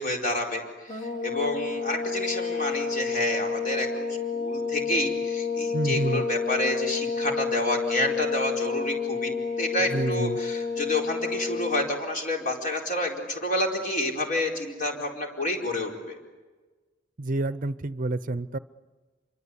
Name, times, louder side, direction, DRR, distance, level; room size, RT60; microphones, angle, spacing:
voice 1, 0.0-16.2, left 1 dB, 40° left, 1 dB, 4.5 m, -29 dB
sound 1, 0.9-11.9, left 5 dB, 25° left, 2.9 m, -30 dB
voice 2, 5.7-6.2 9.9-10.4 17.2-18.6, right 2 dB, 45° right, 16 dB, 0.7 m, -28 dB
27.0 x 23.5 x 8.4 m, 1.3 s
head